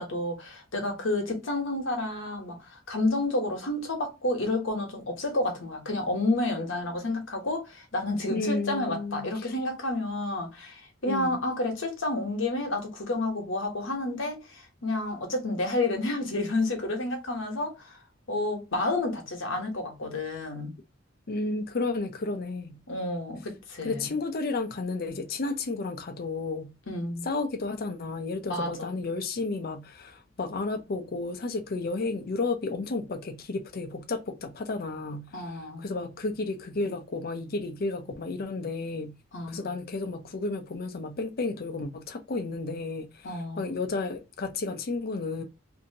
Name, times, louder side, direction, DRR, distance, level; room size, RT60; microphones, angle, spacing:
voice 1, 0.0-18.0 18.3-20.7 22.9-24.1 26.9-27.3 28.5-28.9 35.3-35.9 39.3-39.7 43.2-43.7, left 2 dB, 75° left, 1.0 m, -30 dB
voice 2, 8.3-9.3 11.1-11.4 21.3-22.8 23.8-26.7 27.2-35.3 35.8-39.2 39.5-43.3 43.6-45.4, left 3 dB, 50° left, 0.5 m, -32 dB
2.7 x 2.6 x 2.7 m
head